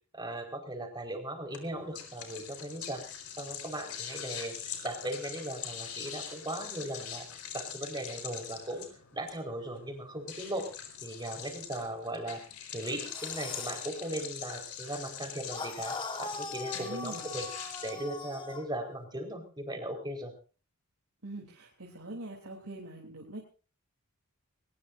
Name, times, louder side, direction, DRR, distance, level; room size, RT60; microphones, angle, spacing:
voice 1, 0.1-3.0 3.4-4.5 4.8-7.3 7.5-8.9 9.1-10.7 11.0-12.4 12.7-17.5 17.8-20.3, right 1 dB, 20° right, 3 dB, 4.8 m, -38 dB
sound 1, 1.5-17.9, left 8 dB, 85° left, 4.3 m, -43 dB
sound 2, 13.0-13.9 15.5-18.7, left 4 dB, 20° left, 1.6 m, -41 dB
voice 2, 16.7-17.3 21.2-23.4, right 2 dB, 75° right, -1 dB, 3.4 m, -43 dB
21.0 x 20.5 x 2.7 m, 0.37 s
head